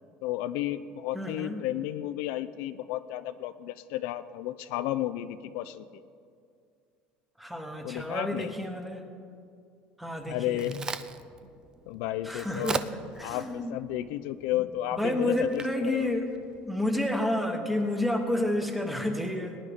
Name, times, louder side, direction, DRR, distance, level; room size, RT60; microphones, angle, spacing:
voice 1, 0.2-5.9 7.8-8.5 10.3-10.8 11.9-12.8 13.2-16.1, left 14 dB, 75° left, 12 dB, 0.4 m, -32 dB
voice 2, 1.1-1.6 7.4-9.0 10.0-10.7 12.2-12.8 13.2-13.8 14.5-14.6 14.9-16.3 16.7-19.6, left 1 dB, 5° right, 4 dB, 1.2 m, -30 dB
Crack, 10.2-17.1, right 5 dB, 20° right, 0.4 m, -41 dB
20.0 x 9.9 x 3.6 m, 2.3 s
cardioid pair, 145°, 4 cm